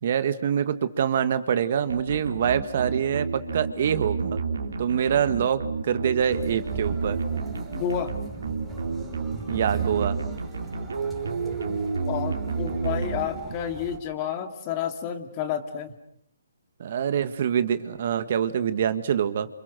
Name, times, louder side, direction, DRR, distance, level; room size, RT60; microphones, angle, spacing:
voice 1, 0.0-4.4 4.8-7.2 9.5-10.2 16.8-19.5, right 8 dB, 50° right, 12 dB, 1.8 m, -25 dB
sound 1, 1.9-13.8, right 4 dB, 80° right, 3.3 m, -31 dB
sound 2, 6.2-14.0, right 2 dB, ahead, 5.7 m, -41 dB
voice 2, 7.7-8.1 11.7-11.8 12.1-15.9, left 9 dB, 30° left, 8 dB, 2.5 m, -30 dB
29.5 x 27.5 x 6.4 m, 0.68 s
hypercardioid pair, 150°, 0 cm